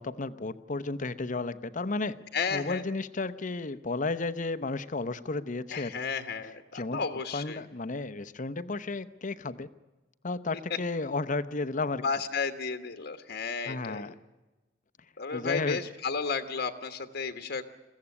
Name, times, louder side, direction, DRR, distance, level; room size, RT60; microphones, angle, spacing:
voice 1, 0.0-2.2 2.5-5.9 6.7-7.0 7.3-9.7 10.2-12.0 13.6-14.1 15.3-15.8, left 3 dB, 45° left, 14 dB, 0.8 m, -33 dB
voice 2, 2.3-2.8 5.7-7.6 12.0-14.1 15.2-17.6, left 5 dB, 60° left, 8 dB, 1.3 m, -33 dB
22.0 x 16.0 x 9.7 m, 1.1 s
head